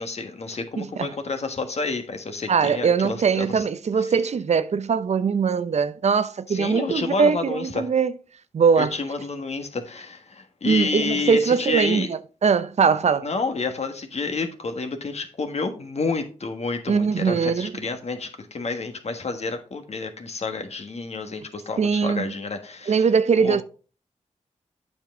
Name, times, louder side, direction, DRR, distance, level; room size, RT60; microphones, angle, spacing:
voice 1, 0.0-3.6 6.5-7.9 8.8-12.1 13.2-23.0 23.4-23.6, left 3 dB, 60° left, 1.5 m, -29 dB
voice 2, 0.8-1.1 2.5-8.1 8.5-9.0 10.6-13.3 16.9-17.7 21.8-22.3 22.9-23.6, right 6 dB, 60° right, 0.6 m, -21 dB
8.7 x 5.3 x 3.7 m
cardioid pair, 60°, 13 cm